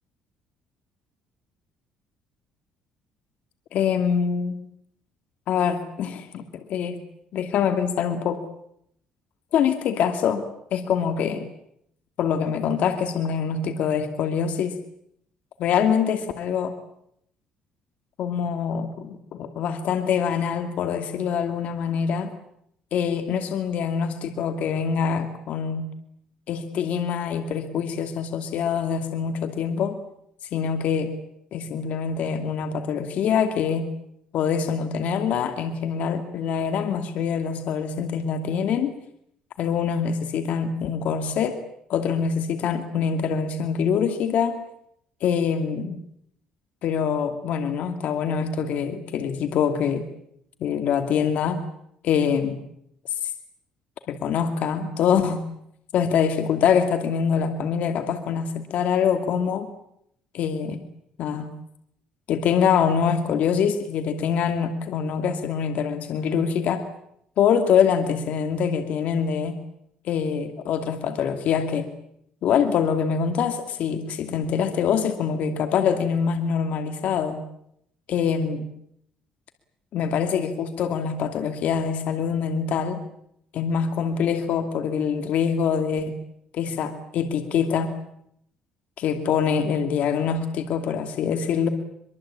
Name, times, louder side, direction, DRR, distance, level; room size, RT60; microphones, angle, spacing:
voice 1, 3.7-4.6 5.5-7.0 7.3-8.4 9.5-11.5 12.2-14.7 15.6-16.7 18.2-22.3 22.9-25.9 26.5-30.0 30.5-31.1 31.5-33.9 34.3-38.9 39.6-41.6 41.9-44.6 45.2-46.0 46.8-50.0 50.6-51.6 52.0-52.6 53.2-53.3 54.1-55.4 55.9-59.7 60.3-60.8 61.2-61.5 62.3-66.8 67.4-69.5 70.0-71.9 72.4-77.4 78.1-78.7 79.9-83.0 83.5-86.2 86.5-87.9 89.0-91.7, left 7 dB, 65° left, 7 dB, 2.6 m, -24 dB
24.0 x 23.0 x 8.8 m, 0.73 s
cardioid pair, 105°, 3 cm